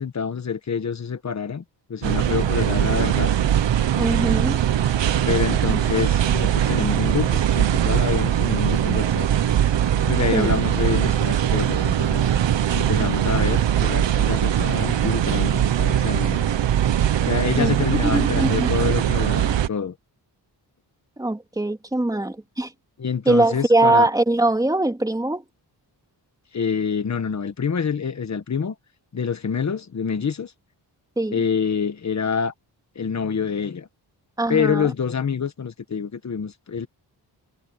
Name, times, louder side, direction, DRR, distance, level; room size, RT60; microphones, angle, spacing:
voice 1, 0.0-1.6 1.9-3.3 5.3-9.3 10.0-12.3 12.7-16.4 17.3-19.9 23.0-24.1 26.5-28.7 29.1-30.5 31.3-32.5 32.9-33.9 34.5-36.9, left 6 dB, 40° left, 1.4 m, -26 dB
sound 1, 2.0-19.7, right 10 dB, 85° right, 1.4 m, -21 dB
voice 2, 4.0-4.6 10.3-10.5 17.6-17.7 18.1-18.7 21.2-22.7 23.3-25.4 31.2-31.4 34.4-34.9, right 2 dB, 10° right, 2.9 m, -21 dB
wide cardioid pair, 145°, 43 cm